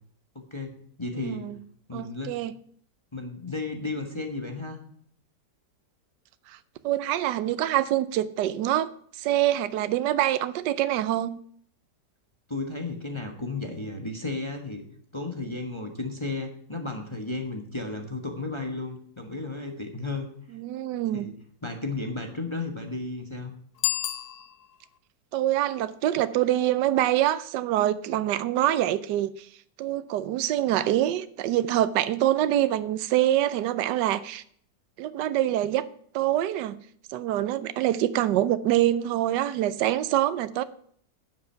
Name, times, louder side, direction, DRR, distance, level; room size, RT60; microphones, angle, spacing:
voice 1, 0.3-1.5 1.9-2.4 3.1-4.8 12.5-14.9 15.1-20.3 21.1-21.3 21.6-23.5, left 3 dB, 20° left, 3 dB, 1.2 m, -34 dB
voice 2, 1.2-1.6 1.9-2.5 6.5-6.6 6.8-8.9 9.2-11.4 20.5-21.3 25.3-29.5 29.8-34.4 35.0-35.9 36.1-36.7 37.1-40.6, right 13 dB, 80° right, 14 dB, 1.3 m, -25 dB
Bicycle bell, 23.7-25.0, left 12 dB, 65° left, 1.2 m, -31 dB
11.5 x 7.7 x 5.7 m, 0.62 s
omnidirectional pair, 1.9 m